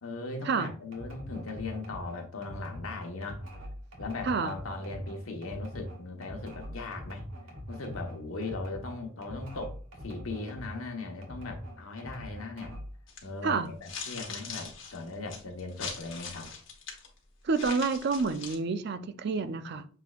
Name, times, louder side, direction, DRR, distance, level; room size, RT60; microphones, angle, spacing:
voice 1, 0.0-3.4 4.0-7.2 7.7-12.7 13.2-16.5, left 3 dB, 80° left, 1.1 m, -38 dB
sound 1, 0.9-10.9 11.2-13.0, equal, 75° right, 1.8 m, -43 dB
sound 2, 13.1-13.3 13.8-17.1 17.5-18.6, left 5 dB, 60° left, 1.1 m, -41 dB
voice 2, 17.4-19.9, right 4 dB, 50° right, 0.4 m, -29 dB
6.7 x 3.2 x 2.4 m
head